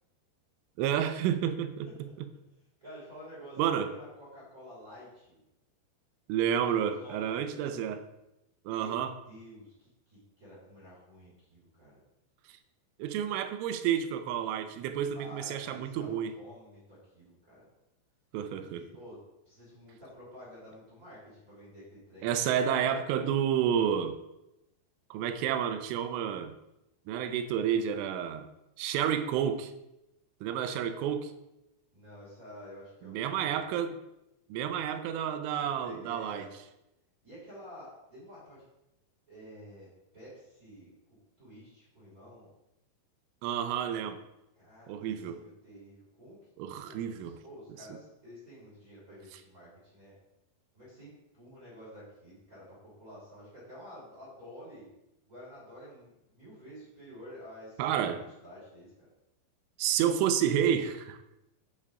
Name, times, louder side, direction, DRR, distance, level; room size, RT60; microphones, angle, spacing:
voice 1, 0.8-1.9 3.6-3.9 6.3-8.0 8.7-9.1 13.0-16.3 18.3-18.8 22.2-24.2 25.1-26.6 27.1-28.5 28.8-29.7 30.4-31.3 33.0-34.0 34.5-36.5 43.4-44.2 44.9-45.5 46.6-47.4 57.8-58.2 59.8-61.2, right 9 dB, 90° right, 9 dB, 3.2 m, -30 dB
voice 2, 2.8-5.4 6.7-7.8 8.7-12.0 15.1-17.7 18.7-19.2 19.4-22.3 31.9-33.6 35.6-36.6 37.2-38.6 39.3-39.9 40.1-42.5 44.5-46.4 46.8-50.1 50.7-54.9 55.2-59.1, equal, 20° right, -8 dB, 3.3 m, -50 dB
8.6 x 8.5 x 3.7 m, 0.90 s
omnidirectional pair, 5.5 m